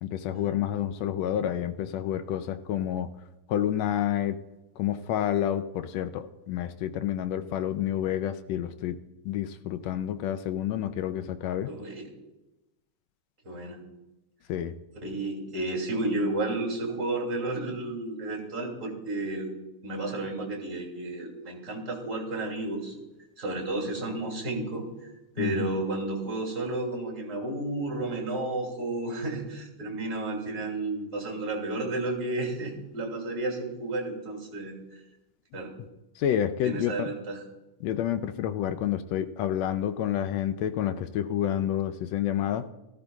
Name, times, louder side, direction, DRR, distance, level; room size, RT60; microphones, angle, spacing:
voice 1, 0.0-3.1 3.5-4.4 4.8-9.0 9.3-11.7 14.5-14.8 25.4-25.7 35.5-35.6 36.2-37.1 37.8-42.7, left 10 dB, 75° left, 10 dB, 1.7 m, -29 dB
voice 2, 11.7-12.1 13.4-13.8 15.0-19.5 19.8-22.9 23.4-24.8 25.3-34.7 35.5-35.7 36.6-37.4, right 2 dB, 25° right, 0 dB, 2.8 m, -32 dB
17.5 x 13.5 x 2.3 m, 0.99 s
omnidirectional pair, 3.3 m